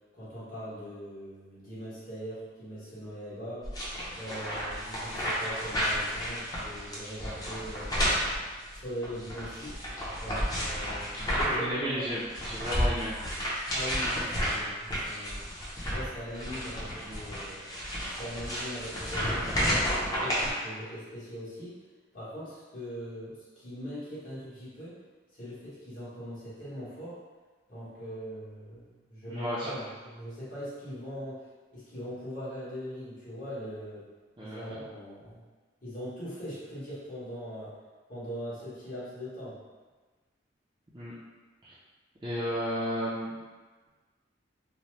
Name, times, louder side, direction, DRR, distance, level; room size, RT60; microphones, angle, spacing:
voice 1, 0.1-3.7 4.1-8.3 8.7-9.8 10.2-12.1 13.7-15.4 15.8-17.8 18.1-21.8 22.1-25.0 25.3-27.2 27.7-34.1 34.4-35.4 35.8-37.7 38.1-39.6, equal, 50° left, -10 dB, 1.2 m, -41 dB
sound 1, 3.6-11.7 12.0-20.5, equal, 20° left, 0.6 m, -32 dB
voice 2, 11.5-13.2 29.3-29.8 34.4-34.8 40.9-41.1 41.6-41.7 42.2-43.3, equal, 25° right, -10 dB, 0.4 m, -33 dB
2.8 x 2.0 x 3.1 m, 1.3 s
head